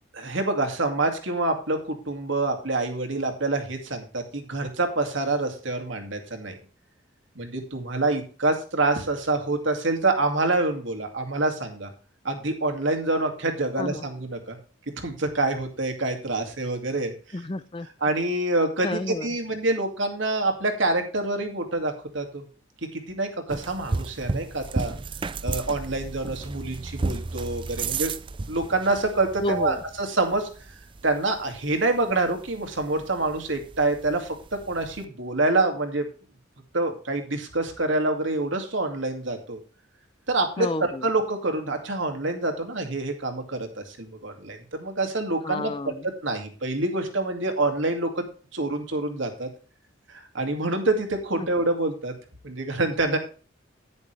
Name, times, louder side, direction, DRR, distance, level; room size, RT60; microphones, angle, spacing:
voice 1, 0.1-6.6 7.4-11.9 12.2-14.6 15.0-17.1 18.0-22.4 22.9-24.9 25.4-28.1 28.5-30.8 31.0-36.1 36.7-39.6 40.3-48.2 48.5-49.5 50.1-52.1 52.4-53.2, right 2 dB, 70° right, 4 dB, 2.4 m, -26 dB
voice 2, 17.3-17.9 18.8-19.3 29.4-29.8 40.6-41.1 45.4-46.0 51.4-51.5, left 2 dB, 25° left, 15 dB, 0.5 m, -30 dB
sound 1, 23.5-35.0, right 3 dB, 25° right, 0.4 m, -34 dB
11.0 x 9.9 x 3.3 m, 0.38 s
head